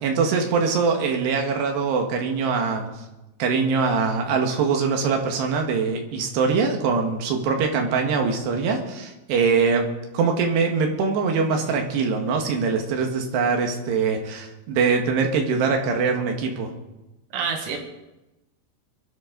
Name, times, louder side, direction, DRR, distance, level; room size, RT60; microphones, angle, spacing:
voice 1, 0.0-2.9 3.4-9.9 10.1-16.7, right 5 dB, 65° right, 3 dB, 3.5 m, -23 dB
voice 2, 17.3-17.8, right 6 dB, 85° right, 3 dB, 4.7 m, -28 dB
23.0 x 11.5 x 4.0 m, 0.99 s
omnidirectional pair, 5.8 m